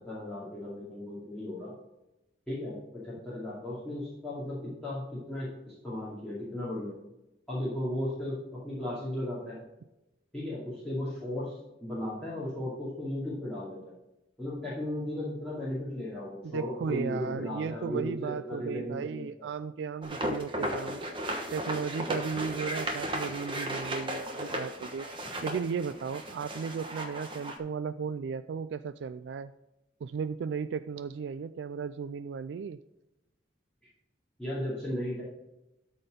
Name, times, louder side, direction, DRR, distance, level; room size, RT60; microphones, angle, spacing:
voice 1, 0.0-1.7 2.5-6.9 7.5-9.6 10.3-11.5 11.8-13.8 14.4-19.2 34.4-35.2, left 1 dB, 5° left, -9 dB, 2.4 m, -35 dB
voice 2, 16.4-21.0 21.5-25.1 25.4-29.5 30.0-32.8, right 6 dB, 70° right, 13 dB, 0.3 m, -35 dB
sound 1, 20.0-27.6, right 1 dB, 25° right, 1.1 m, -35 dB
13.0 x 4.3 x 5.1 m, 0.93 s
head